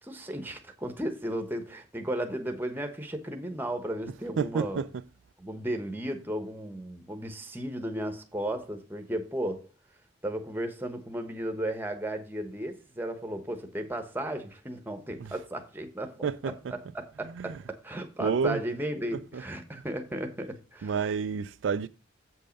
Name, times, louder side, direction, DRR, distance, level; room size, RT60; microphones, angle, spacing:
voice 1, 0.0-4.8 5.4-9.7 10.2-21.1, right 1 dB, 10° right, 1.1 m, -35 dB
voice 2, 4.4-4.9 15.2-15.3 16.2-16.5 17.4-17.5 18.2-18.6 20.8-21.9, right 6 dB, 75° right, 0.4 m, -29 dB
7.7 x 5.5 x 5.2 m
head